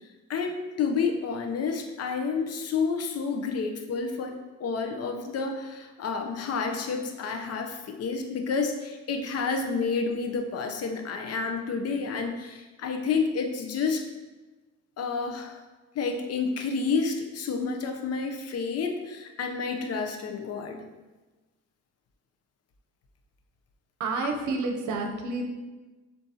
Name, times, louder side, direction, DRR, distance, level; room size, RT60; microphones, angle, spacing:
voice 1, 0.3-14.0 15.0-15.6 15.9-20.8 24.4-24.5, left 5 dB, 55° left, 4 dB, 0.7 m, -30 dB
voice 2, 24.0-25.4, right 3 dB, 75° right, 3 dB, 0.7 m, -29 dB
7.1 x 2.7 x 2.8 m, 1.2 s
cardioid pair, 90°, 30 cm